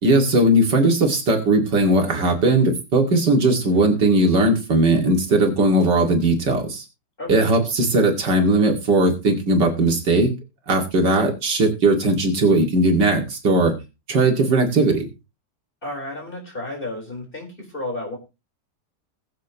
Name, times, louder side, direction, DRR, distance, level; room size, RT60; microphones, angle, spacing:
voice 1, 0.0-6.8 7.3-10.3 10.7-13.7 14.1-15.1, right 2 dB, 70° right, 2 dB, 2.9 m, -18 dB
voice 2, 7.2-7.5 15.8-18.2, left 1 dB, 30° left, 1 dB, 4.6 m, -32 dB
20.5 x 7.5 x 3.0 m, 0.27 s
omnidirectional pair, 1.9 m